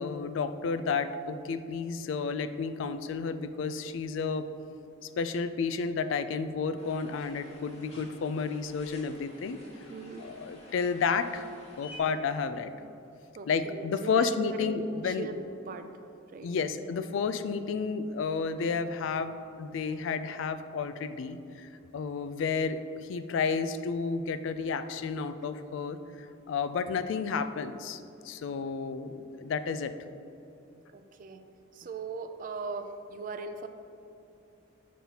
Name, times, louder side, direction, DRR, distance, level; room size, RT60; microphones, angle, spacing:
voice 1, 0.0-4.5 5.0-9.6 10.2-11.5 11.8-12.7 13.5-15.4 16.4-28.0 28.2-29.9, left 5 dB, 70° left, 11 dB, 0.3 m, -31 dB
sound 1, 6.8-12.0, left 2 dB, 35° left, 1.1 m, -52 dB
voice 2, 9.9-10.3 13.4-13.9 14.2-15.8 16.3-16.5 28.4-28.5 30.9-31.4 31.8-33.7, right 4 dB, 45° right, 8 dB, 0.3 m, -39 dB
7.3 x 5.5 x 2.8 m, 2.7 s
head